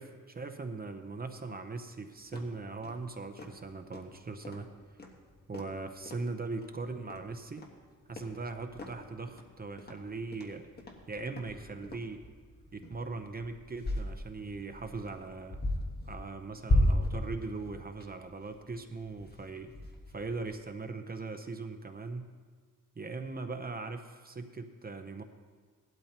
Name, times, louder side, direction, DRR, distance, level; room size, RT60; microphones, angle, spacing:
voice 1, 0.0-4.7 5.5-7.7 8.1-10.7 11.1-12.2 12.7-15.6 16.1-19.7 20.1-22.3 22.9-25.2, right 3 dB, 30° right, 6 dB, 0.7 m, -40 dB
sound 1, 2.2-20.5, left 1 dB, 30° left, 1.3 m, -37 dB
18.0 x 12.0 x 2.9 m, 1.5 s
wide cardioid pair, 155°, 34 cm